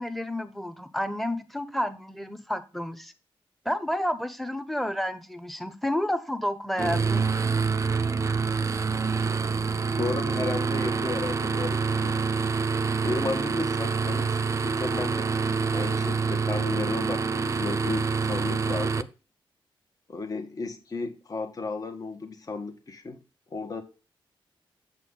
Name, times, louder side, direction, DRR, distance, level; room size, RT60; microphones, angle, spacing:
voice 1, 0.0-3.1 3.6-7.2, left 1 dB, ahead, 10 dB, 1.1 m, -30 dB
sound 1, 6.8-19.0, right 5 dB, 35° right, 0.5 m, -26 dB
voice 2, 10.0-12.2 13.0-15.3 15.7-19.1 20.1-23.2 23.5-23.8, left 3 dB, 40° left, 6 dB, 1.5 m, -34 dB
8.2 x 7.1 x 3.8 m, 0.32 s
wide cardioid pair, 110°, 9 cm